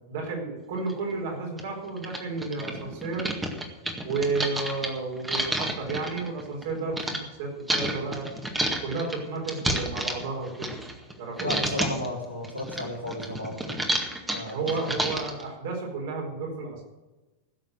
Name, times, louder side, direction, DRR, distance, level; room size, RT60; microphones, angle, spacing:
voice 1, 0.1-3.3 4.0-8.3 8.8-10.7 11.2-11.5 14.5-16.8, right 3 dB, 55° right, 0 dB, 4.7 m, -32 dB
sound 1, 0.9-1.0 1.6-1.7 2.0-7.2 7.7-11.1 11.4-12.1 12.4-15.4, right 1 dB, 10° right, 1.9 m, -30 dB
voice 2, 11.4-13.8 14.3-14.6, left 1 dB, 85° left, -8 dB, 3.9 m, -33 dB
16.0 x 7.5 x 8.0 m, 1.1 s
figure-of-eight pair, 90°, 0 cm